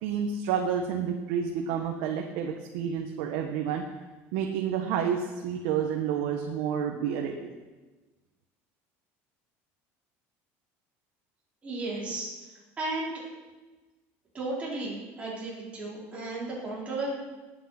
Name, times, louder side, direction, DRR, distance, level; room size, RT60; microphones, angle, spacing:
voice 1, 0.0-3.8 4.3-7.5, right 8 dB, 75° right, 2 dB, 1.4 m, -29 dB
voice 2, 11.6-12.3 12.8-13.1 14.3-17.1, right 2 dB, 20° right, -5 dB, 5.1 m, -34 dB
19.0 x 8.7 x 6.1 m, 1.2 s
cardioid pair, 150°, 6 cm